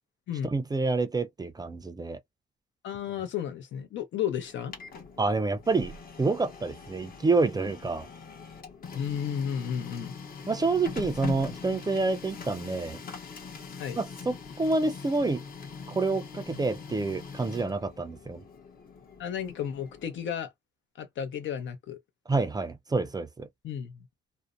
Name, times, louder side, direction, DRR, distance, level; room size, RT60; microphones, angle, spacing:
voice 1, 0.5-2.2 5.2-5.9 6.2-8.1 10.5-13.0 14.0-15.4 15.9-18.4 22.3-23.5, right 3 dB, 20° right, 0.4 m, -28 dB
voice 2, 2.8-4.7 8.9-10.2 13.8-14.0 19.2-20.5 21.0-22.0 23.6-24.1, left 8 dB, 70° left, 0.7 m, -33 dB
Printer, 4.4-20.2, left 5 dB, 45° left, 0.9 m, -42 dB
2.6 x 2.0 x 2.4 m
cardioid pair, 90°, 20 cm